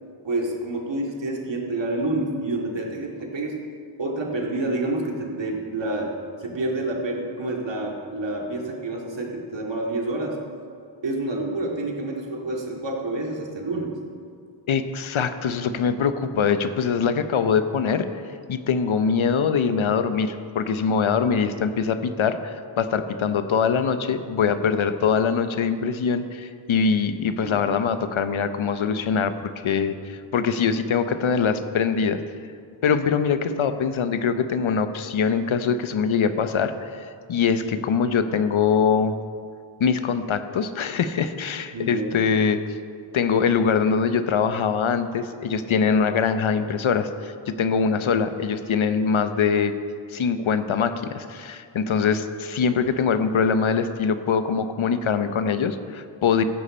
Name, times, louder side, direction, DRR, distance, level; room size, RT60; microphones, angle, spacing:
voice 1, 0.2-3.6 4.0-6.1 6.4-10.4 11.0-14.0 27.4-27.6 37.4-37.7 41.7-42.1, right 2 dB, 65° right, 0 dB, 2.2 m, -28 dB
voice 2, 14.7-18.1 18.5-32.2 32.8-39.2 39.8-42.6 43.1-49.7 50.1-56.4, left 6 dB, 80° left, 10 dB, 0.8 m, -23 dB
15.0 x 10.5 x 4.3 m, 2.3 s
wide cardioid pair, 75°, 48 cm